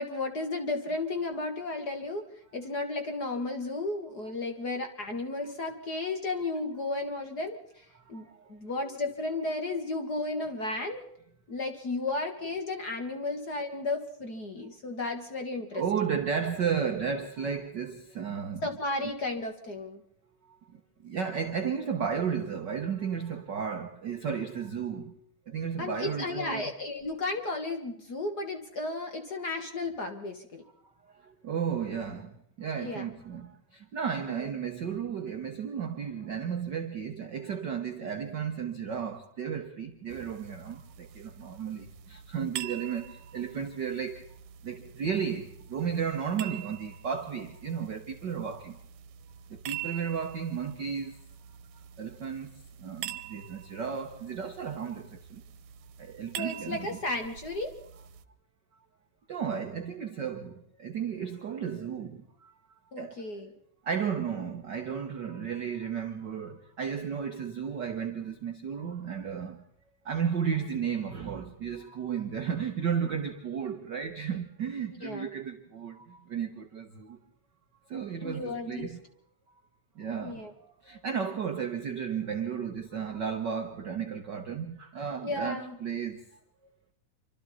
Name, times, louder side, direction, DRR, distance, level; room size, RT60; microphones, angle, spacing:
voice 1, 0.0-2.2 2.5-11.0 11.5-15.8 18.6-20.0 25.8-30.6 32.8-33.1 34.3-34.5 56.4-57.7 62.9-63.5 75.0-75.3 78.2-78.9 80.2-80.5 85.2-85.8, left 2 dB, 40° left, 1.7 m, -34 dB
voice 2, 7.9-8.5 15.7-18.7 20.7-25.2 25.5-26.7 31.1-44.3 44.6-48.8 49.5-51.1 52.0-52.5 52.8-55.4 56.0-57.0 59.3-62.5 62.9-63.2 63.8-69.7 70.0-77.2 77.9-79.0 80.0-80.4 80.8-86.2, right 7 dB, 60° right, 1.2 m, -34 dB
sound 1, 40.1-58.2, right 10 dB, 75° right, 2.3 m, -45 dB
27.0 x 25.0 x 4.3 m
omnidirectional pair, 3.5 m